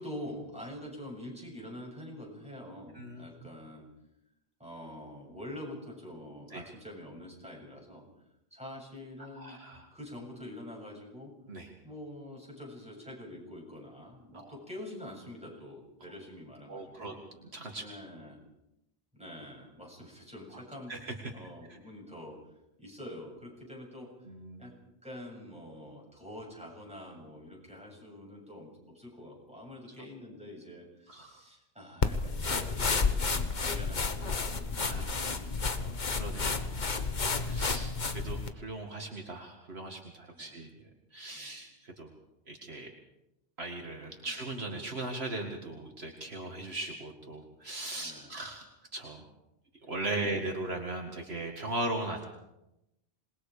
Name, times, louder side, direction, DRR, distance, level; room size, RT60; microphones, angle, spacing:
voice 1, 0.0-3.9 4.6-8.0 8.5-9.6 9.9-11.3 11.8-17.2 17.8-18.4 19.1-21.0 21.3-22.4 22.8-24.1 24.6-24.7 25.0-36.0 36.5-36.9 40.3-40.6 41.3-41.6 44.2-44.3 48.0-48.3 50.2-50.4, left 1 dB, 5° right, -1 dB, 7.3 m, -46 dB
voice 2, 9.4-9.9 11.5-11.7 14.3-14.5 16.7-17.2 17.5-17.8 20.5-20.6 20.9-21.1 21.7-21.8 24.3-24.6 31.1-31.4 34.7-35.2 36.2-36.8 37.5-42.1 42.5-42.9 43.6-48.6 48.9-49.3 49.8-52.2, right 2 dB, 65° right, 2 dB, 2.4 m, -38 dB
sound 1, 32.0-38.5, left 4 dB, 45° left, 1.3 m, -31 dB
27.0 x 21.0 x 5.0 m, 0.89 s
omnidirectional pair, 1.1 m